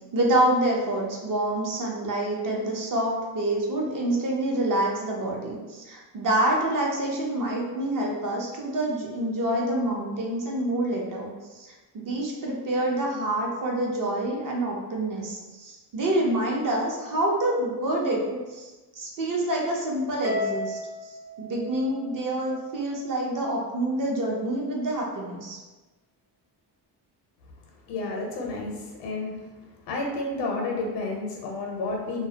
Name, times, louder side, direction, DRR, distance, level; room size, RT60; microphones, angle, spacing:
voice 1, 0.1-11.7 11.9-18.2 18.5-21.1 21.4-25.6, right 1 dB, 50° right, -1 dB, 0.7 m, -27 dB
Harp, 20.2-22.7, left 2 dB, 10° right, 0.4 m, -34 dB
voice 2, 27.9-29.5 29.9-32.3, left 2 dB, 85° left, 0 dB, 0.6 m, -31 dB
2.2 x 2.0 x 2.7 m, 1.2 s
cardioid pair, 90°, 42 cm